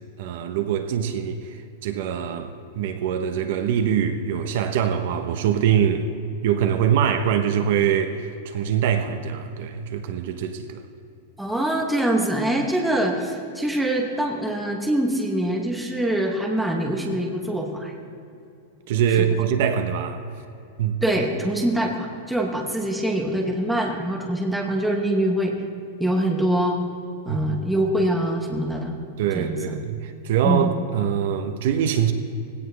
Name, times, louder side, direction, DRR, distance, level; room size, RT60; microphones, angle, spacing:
voice 1, 0.2-6.1 6.4-10.8 18.9-20.2 20.8-21.0 27.3-27.7 29.2-32.1, right 8 dB, 50° right, 7 dB, 0.9 m, -23 dB
voice 2, 11.4-18.0 21.0-25.5 26.0-26.8 27.2-29.0 29.3-29.8 30.4-30.7, right 1 dB, ahead, 0 dB, 1.1 m, -24 dB
19.5 x 17.0 x 3.4 m, 2.6 s
supercardioid pair, 175°, 0 cm